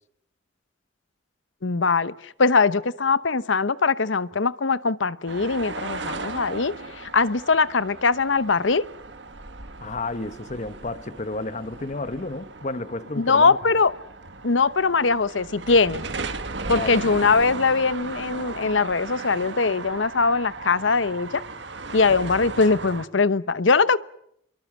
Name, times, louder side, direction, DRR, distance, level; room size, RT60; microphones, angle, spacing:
voice 1, 1.6-8.8 13.2-13.9 14.4-16.0 16.7-21.4 21.9-24.0, left 4 dB, 85° left, 0.9 m, -21 dB
sound 1, 5.3-23.1, right 3 dB, 70° right, 1.9 m, -37 dB
voice 2, 9.8-13.6 16.7-17.0 17.2-17.3, left 2 dB, 40° left, 1.0 m, -31 dB
29.0 x 23.0 x 7.4 m
head